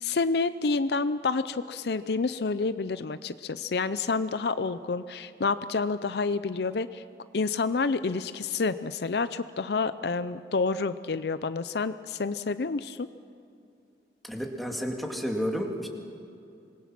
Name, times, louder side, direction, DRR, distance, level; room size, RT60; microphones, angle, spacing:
voice 1, 0.0-7.0 7.3-13.1, left 4 dB, 65° left, 13 dB, 0.5 m, -29 dB
voice 2, 14.2-15.9, equal, ahead, 1 dB, 2.0 m, -31 dB
26.5 x 21.0 x 6.0 m, 2.5 s
head